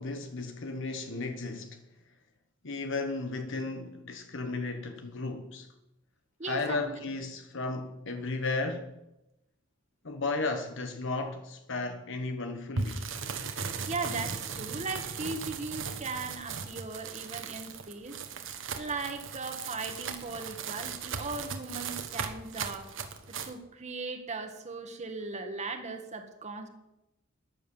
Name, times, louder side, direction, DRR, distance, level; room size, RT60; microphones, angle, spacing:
voice 1, 0.0-1.8 2.6-5.7 6.5-8.9 10.0-13.1, left 3 dB, 65° left, 1.2 m, -34 dB
voice 2, 6.4-7.0 13.9-18.2 18.8-22.9 23.3-26.7, right 3 dB, 35° right, 1.6 m, -38 dB
sound 1, 12.8-23.5, right 5 dB, 65° right, 1.6 m, -37 dB
14.0 x 10.0 x 7.1 m
head